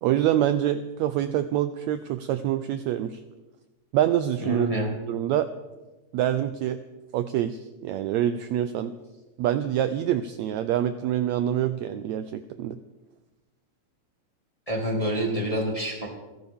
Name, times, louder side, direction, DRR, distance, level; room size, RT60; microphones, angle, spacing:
voice 1, 0.0-3.2 3.9-4.7 5.1-5.5 6.1-6.8 7.1-8.9 9.4-12.8, right 11 dB, 85° right, 11 dB, 1.5 m, -26 dB
voice 2, 4.4-4.9 14.7-16.1, right 1 dB, 10° left, -1 dB, 1.8 m, -27 dB
29.0 x 12.0 x 3.6 m, 1.1 s
omnidirectional pair, 3.8 m